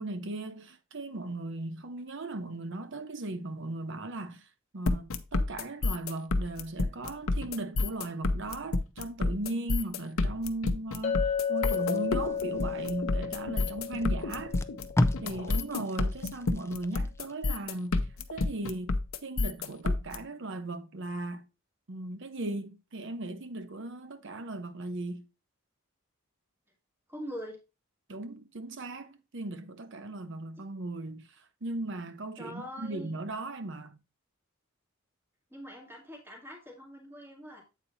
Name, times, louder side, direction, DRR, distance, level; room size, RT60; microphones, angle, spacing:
voice 1, 0.0-4.5 4.7-14.6 15.2-21.4 21.9-25.2 28.1-34.0, right 2 dB, 60° right, 0.9 m, -37 dB
sound 1, 4.9-20.2, left 2 dB, 80° left, 0.7 m, -29 dB
Chink clink, 11.0-15.5, left 7 dB, 35° left, 0.9 m, -33 dB
Packing tape duct tape, 11.6-13.2 13.9-14.0 14.4-17.3 17.8-18.0, left 1 dB, 15° left, 0.4 m, -35 dB
voice 2, 27.1-27.6 32.4-33.2 35.5-37.6, equal, 10° right, 2.0 m, -43 dB
8.3 x 4.2 x 4.1 m
head